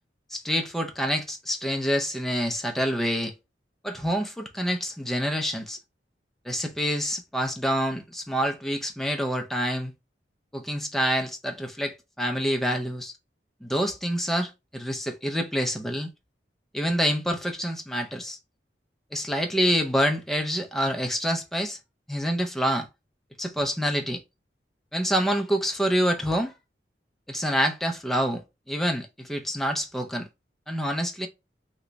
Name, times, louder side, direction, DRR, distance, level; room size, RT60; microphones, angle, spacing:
voice 1, 0.3-3.3 3.8-5.8 6.5-9.9 10.5-13.1 13.6-16.1 16.7-18.4 19.1-21.8 22.1-22.9 23.4-24.2 24.9-26.5 27.3-28.4 28.7-30.3 30.7-31.3, equal, ahead, 0.4 m, -27 dB
3.0 x 2.2 x 3.8 m
head